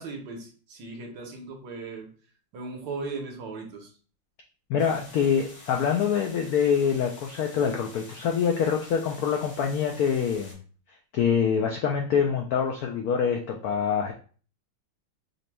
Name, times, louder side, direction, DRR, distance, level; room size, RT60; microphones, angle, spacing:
voice 1, 0.0-2.1 2.5-3.9, right 3 dB, 65° right, 1 dB, 1.5 m, -37 dB
voice 2, 4.7-10.6 11.1-14.1, left 7 dB, 85° left, 2 dB, 0.8 m, -25 dB
sound 1, 4.8-10.5, left 2 dB, 60° left, 2.1 m, -48 dB
5.2 x 3.0 x 2.2 m, 0.40 s
omnidirectional pair, 2.2 m